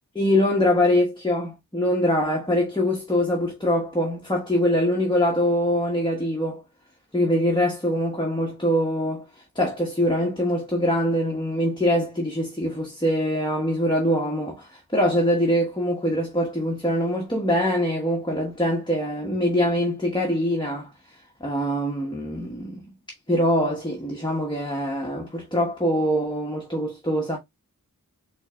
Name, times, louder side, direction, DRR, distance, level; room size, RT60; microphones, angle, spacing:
voice 1, 0.1-6.6 7.1-9.3 9.5-20.9 21.4-22.9 23.3-27.4, equal, 15° left, 1.1 m, -23 dB
4.4 x 3.4 x 2.2 m
wide cardioid pair, 50°, 35 cm